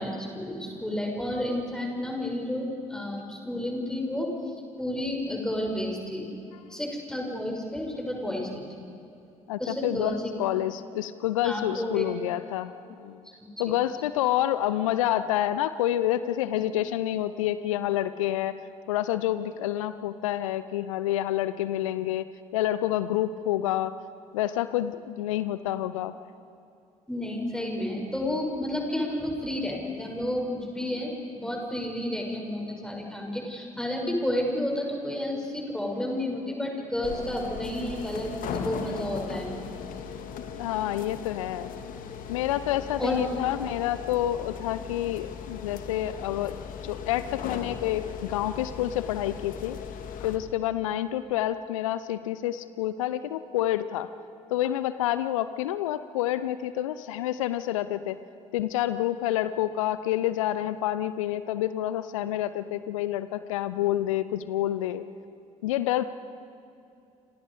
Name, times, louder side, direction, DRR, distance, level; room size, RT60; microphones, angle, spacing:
voice 1, 0.0-4.3 4.8-6.3 6.7-8.8 9.6-10.3 11.4-12.0 13.6-13.7 27.1-39.6 43.0-43.2, left 1 dB, 5° left, 0 dB, 6.7 m, -31 dB
voice 2, 9.5-12.7 13.0-13.2 13.6-18.6 18.9-22.3 22.5-23.9 24.3-26.1 40.5-41.7 42.3-46.5 46.8-49.8 50.2-54.1 54.5-58.2 58.5-65.0 65.6-66.0, left 13 dB, 75° left, 14 dB, 0.7 m, -28 dB
sound 1, 37.0-50.4, left 7 dB, 55° left, 2.0 m, -38 dB
30.0 x 27.0 x 5.1 m, 2.6 s
figure-of-eight pair, 50°, 17 cm